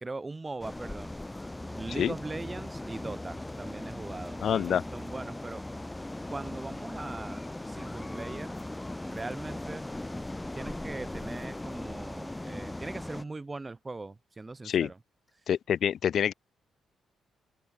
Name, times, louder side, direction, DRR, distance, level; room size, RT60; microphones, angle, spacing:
voice 1, 0.0-1.2 1.7-5.6 6.3-8.5 9.1-9.8 10.5-15.0, right 3 dB, 20° right, 1.0 m, -40 dB
sound 1, 0.6-13.2, left 1 dB, 10° left, 0.9 m, -39 dB
voice 2, 4.4-4.8 14.6-14.9 15.5-16.3, left 9 dB, 65° left, 0.6 m, -26 dB
open air
cardioid pair, 80°, 0 cm